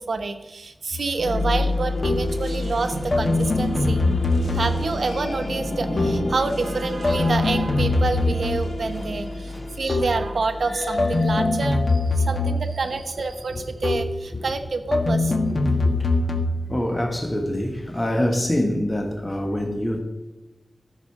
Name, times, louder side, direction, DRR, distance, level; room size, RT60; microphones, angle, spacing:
voice 1, 0.0-15.5, right 3 dB, 80° right, 7 dB, 0.9 m, -28 dB
sound 1, 0.9-1.1 2.0-2.4 3.1-5.0 6.0-6.4 7.0-8.8 9.9-10.3 11.0-12.9 13.8-14.2 14.9-16.7, left 2 dB, 45° left, 1.4 m, -23 dB
sound 2, 1.1-13.0, left 2 dB, 80° left, 2.4 m, -29 dB
voice 2, 9.5-9.8 12.2-12.3 13.5-13.6 14.3-14.4 15.5-16.2 16.7-20.0, left 1 dB, 20° left, 2 dB, 1.6 m, -26 dB
13.5 x 6.7 x 4.8 m, 1.1 s
wide cardioid pair, 60°, 0 cm